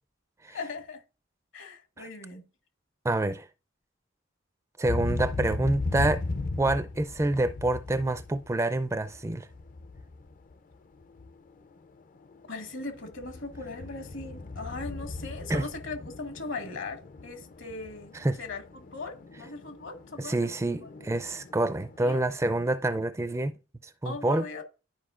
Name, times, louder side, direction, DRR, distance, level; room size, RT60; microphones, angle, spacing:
voice 1, 0.5-1.0 1.5-2.5 12.5-18.1 18.4-20.5 20.8-20.9 22.0-22.2 24.0-24.6, left 3 dB, 70° left, 1.6 m, -39 dB
voice 2, 3.0-3.5 4.8-6.2 6.6-9.5 15.5-15.6 18.1-18.4 20.2-23.5 24.0-24.4, right 2 dB, 15° right, 0.4 m, -27 dB
sound 1, 4.8-10.7 11.0-11.7 12.2-22.3, left 3 dB, 40° left, 0.5 m, -37 dB
12.0 x 4.8 x 2.4 m
head